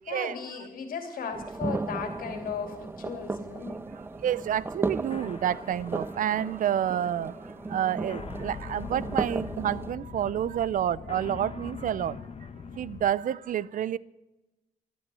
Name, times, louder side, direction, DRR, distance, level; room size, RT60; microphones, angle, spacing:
voice 1, 0.1-3.8, left 6 dB, 80° left, 2.8 m, -36 dB
sound 1, 1.3-9.9, right 3 dB, 15° right, 0.4 m, -35 dB
sound 2, 3.4-13.1, left 5 dB, 45° left, 1.0 m, -43 dB
voice 2, 4.2-7.3 7.7-12.1 12.8-14.0, right 10 dB, 70° right, 0.5 m, -29 dB
12.5 x 12.0 x 7.6 m
cardioid pair, 100°, 14 cm